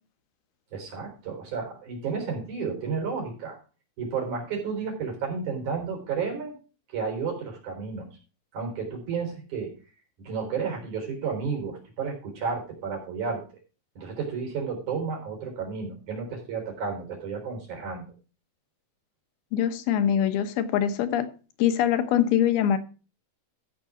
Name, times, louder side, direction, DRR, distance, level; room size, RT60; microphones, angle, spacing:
voice 1, 0.7-3.6 4.0-6.5 6.9-8.1 8.5-9.7 10.2-13.4 13.9-18.1, right 5 dB, 50° right, 5.2 m, -32 dB
voice 2, 19.5-21.3 21.6-22.8, left 10 dB, 80° left, 3.0 m, -23 dB
14.0 x 6.1 x 5.0 m
omnidirectional pair, 4.5 m